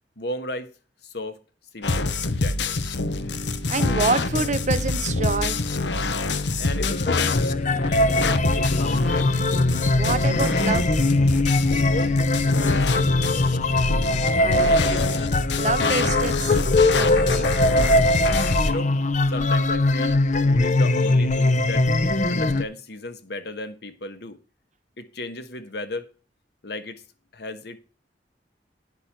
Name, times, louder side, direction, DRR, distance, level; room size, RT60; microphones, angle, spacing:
voice 1, 0.2-0.7 1.0-1.4 1.7-2.8 6.6-7.5 7.9-9.0 11.9-12.9 13.2-13.9 18.6-18.9 19.3-21.9 22.3-24.4 25.0-26.1 26.6-27.0 27.3-27.8, left 2 dB, 65° left, 1.4 m, -35 dB
sound 1, 1.8-18.7, left 3 dB, 85° left, 0.9 m, -25 dB
voice 2, 3.7-5.6 10.0-10.8 14.4-15.1 15.5-16.6 16.9-17.5, right 4 dB, 45° right, 1.0 m, -27 dB
sound 2, 6.8-22.6, left 2 dB, 45° left, 0.6 m, -21 dB
10.0 x 6.0 x 5.9 m
head